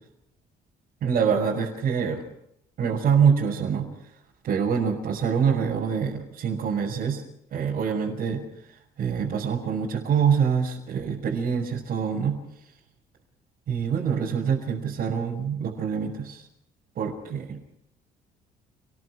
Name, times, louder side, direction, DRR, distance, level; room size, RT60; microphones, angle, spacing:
voice 1, 1.0-2.2 2.8-3.9 4.4-7.2 7.5-8.4 9.0-12.4 13.7-16.5 17.0-17.6, right 7 dB, 60° right, -2 dB, 5.9 m, -25 dB
30.0 x 20.5 x 4.8 m, 0.76 s
cardioid pair, 110°, 17 cm